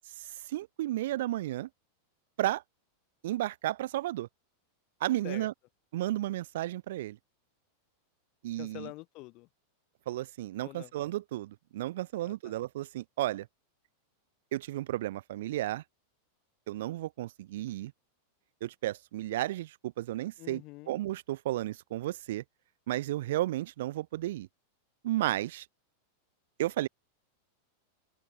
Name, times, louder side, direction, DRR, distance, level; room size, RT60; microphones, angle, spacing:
voice 1, 0.2-1.7 2.4-2.6 3.2-4.3 5.0-5.5 5.9-7.2 8.4-8.9 10.1-13.5 14.5-15.8 16.7-17.9 18.6-22.4 22.9-24.5 25.0-25.7 26.6-26.9, right 15 dB, 70° right, 0.3 m, -33 dB
voice 2, 8.6-9.5 10.6-10.9 12.2-12.3 20.4-21.0, left 23 dB, 50° left, 3.7 m, -45 dB
open air
hypercardioid pair, 115°, 0 cm